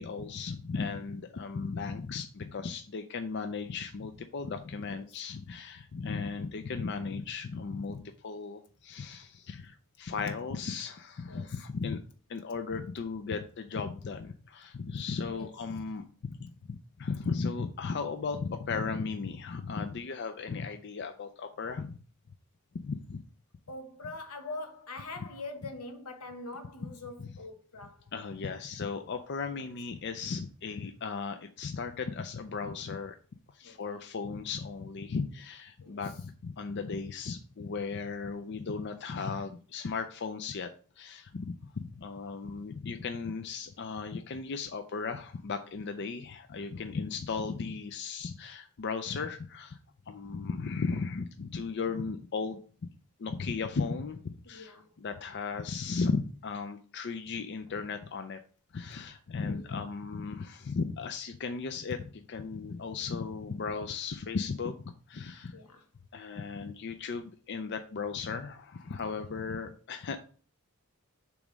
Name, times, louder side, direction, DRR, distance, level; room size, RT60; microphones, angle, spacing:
voice 1, 0.0-12.0 12.3-22.0 22.8-23.2 26.8-26.9 27.2-27.3 28.1-33.2 33.5-40.7 41.0-49.8 50.1-52.6 53.2-58.4 58.7-64.8 65.1-65.6 66.1-70.2, left 4 dB, 50° left, 0.4 m, -36 dB
voice 2, 4.9-5.2 11.3-11.5 12.5-12.6 15.3-15.5 23.7-28.1 29.5-29.7 33.6-33.8 35.8-36.0 54.4-54.9 59.5-59.7 65.5-65.9 69.0-69.2, left 2 dB, 90° left, 1.1 m, -44 dB
7.0 x 3.1 x 5.1 m
head